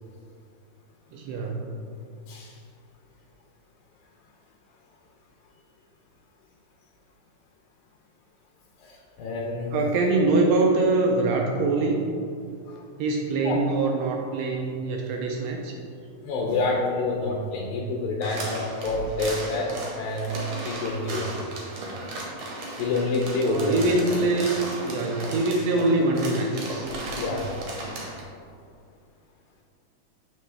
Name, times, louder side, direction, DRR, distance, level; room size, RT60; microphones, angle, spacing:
voice 1, 1.1-1.7 9.7-12.0 13.0-15.7 23.5-24.5 24.8-26.9, right 2 dB, 80° right, 1 dB, 1.5 m, -24 dB
voice 2, 2.3-2.6 8.8-9.7 12.7-12.8 13.4-13.6 16.2-21.3 22.8-23.8 27.2-27.5, left 2 dB, 80° left, -2 dB, 2.0 m, -28 dB
sound 1, 18.2-28.2, right 2 dB, 65° right, 1.9 m, -36 dB
7.6 x 4.3 x 3.3 m, 2.5 s
omnidirectional pair, 3.4 m